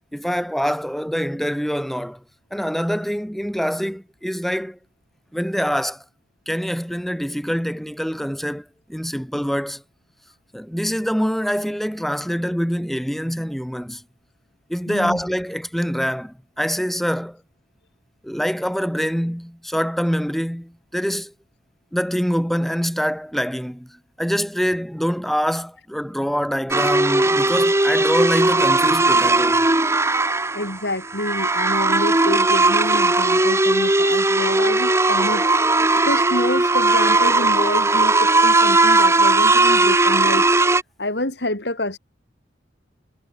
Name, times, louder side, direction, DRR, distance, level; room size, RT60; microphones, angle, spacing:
voice 1, 0.1-2.2 2.5-4.8 5.3-6.0 6.5-8.6 8.9-9.8 10.5-14.0 14.7-17.4 18.2-21.3 21.9-23.9 24.2-29.6, equal, ahead, 3.9 m, -25 dB
voice 2, 14.9-15.2 30.2-35.5 36.0-40.4 41.0-42.0, left 1 dB, 65° left, 5.0 m, -28 dB
sound 1, 26.7-40.8, right 2 dB, 15° right, 1.5 m, -17 dB
head